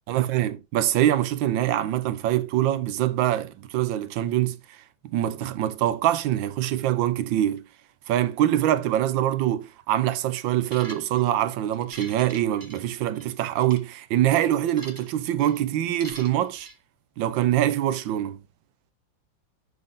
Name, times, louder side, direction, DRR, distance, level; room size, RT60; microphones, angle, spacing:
voice 1, 0.1-4.8 5.0-7.7 8.1-16.7 17.2-18.4, right 12 dB, 80° right, 1.4 m, -24 dB
sound 1, 10.6-11.3 11.7-13.2 13.6-13.8 14.3-15.1 15.4-15.6 16.0-16.7, right 2 dB, 30° right, 0.3 m, -44 dB
6.4 x 5.9 x 3.6 m
omnidirectional pair, 2.1 m